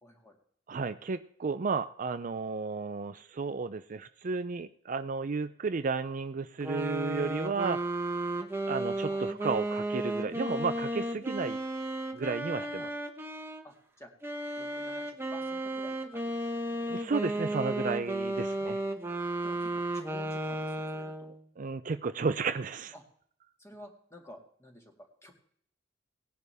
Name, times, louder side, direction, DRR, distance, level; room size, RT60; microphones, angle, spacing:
voice 1, 0.0-0.4 9.1-9.3 12.6-12.9 13.6-14.1 14.6-16.8 18.6-18.7 19.4-21.3 22.9-23.0 23.6-24.9 25.2-25.3, equal, 15° left, 2 dB, 2.2 m, -52 dB
voice 2, 0.7-7.8 8.7-11.6 12.1-12.9 16.9-18.7 21.6-22.9, right 4 dB, 45° right, 11 dB, 0.5 m, -33 dB
sound 1, 6.6-13.6 14.2-21.4, right 1 dB, 10° right, 1.0 m, -34 dB
18.0 x 10.5 x 3.5 m, 0.62 s
head